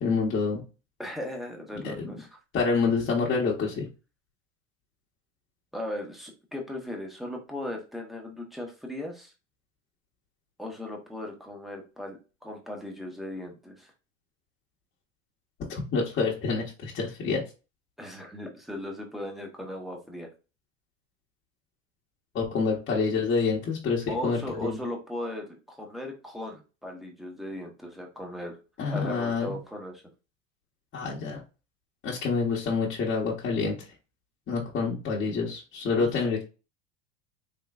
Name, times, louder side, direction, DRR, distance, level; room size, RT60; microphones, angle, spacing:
voice 1, 0.0-0.6 1.8-2.2 2.5-3.9 15.7-17.4 22.3-24.8 28.8-29.6 30.9-31.4 32.0-33.7 34.5-36.4, left 4 dB, 30° left, -4 dB, 1.1 m, -27 dB
voice 2, 1.0-2.4 5.7-9.3 10.6-13.9 18.0-20.3 24.1-28.6 28.9-30.0 36.0-36.4, left 1 dB, ahead, 1 dB, 1.0 m, -37 dB
3.6 x 3.1 x 2.4 m, 0.31 s
supercardioid pair, 110°, 37 cm